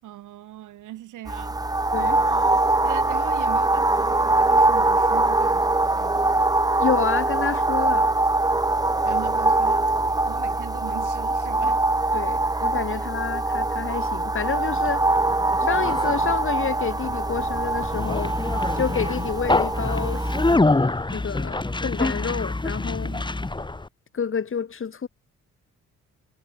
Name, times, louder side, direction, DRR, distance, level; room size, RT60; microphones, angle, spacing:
voice 1, 0.0-6.3 9.0-11.9 12.9-13.1 23.0-23.3, right 14 dB, 80° right, 6.4 m, -40 dB
sound 1, 1.3-20.5, right 2 dB, 10° right, 1.4 m, -23 dB
voice 2, 6.8-8.1 12.1-15.1 15.6-18.3 18.7-23.2 24.1-25.1, left 6 dB, 45° left, 4.6 m, -29 dB
Conversation, 14.6-23.9, left 2 dB, 15° left, 3.1 m, -26 dB
cardioid pair, 90°, 30 cm